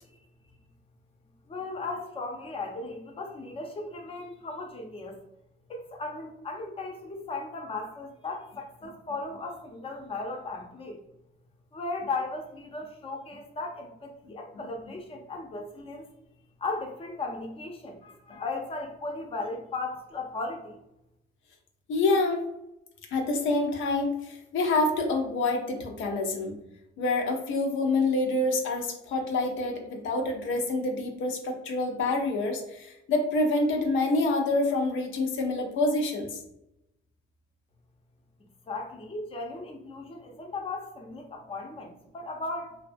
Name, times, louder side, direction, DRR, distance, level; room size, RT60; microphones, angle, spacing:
voice 1, 1.5-5.2 5.7-11.0 11.7-16.1 16.6-20.8 38.7-42.8, left 3 dB, 30° left, 3 dB, 0.5 m, -36 dB
voice 2, 21.9-22.5 23.1-26.6 27.0-36.4, left 2 dB, 75° left, 2 dB, 0.5 m, -27 dB
2.6 x 2.2 x 2.5 m, 0.85 s
cardioid pair, 90°, 20 cm